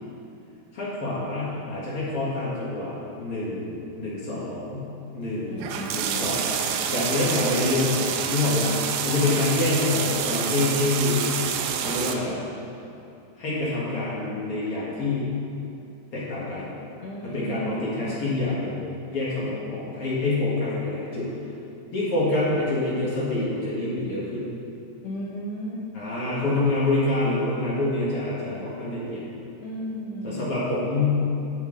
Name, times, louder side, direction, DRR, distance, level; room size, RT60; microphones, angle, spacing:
voice 1, 0.7-7.9 8.3-11.2 11.8-12.4 13.4-15.3 16.1-16.7 17.2-18.8 19.1-21.3 21.9-24.5 25.9-29.2 30.2-31.2, left 2 dB, 50° left, -8 dB, 1.8 m, -26 dB
voice 2, 5.4-6.2 9.2-9.4 17.0-18.2 19.5-19.9 25.0-25.8 26.4-26.6 29.6-30.4, equal, 90° left, -4 dB, 1.8 m, -35 dB
turning on tub, 5.6-12.1, right 8 dB, 80° right, 2.5 m, -27 dB
9.9 x 7.3 x 3.9 m, 2.7 s
omnidirectional pair, 4.8 m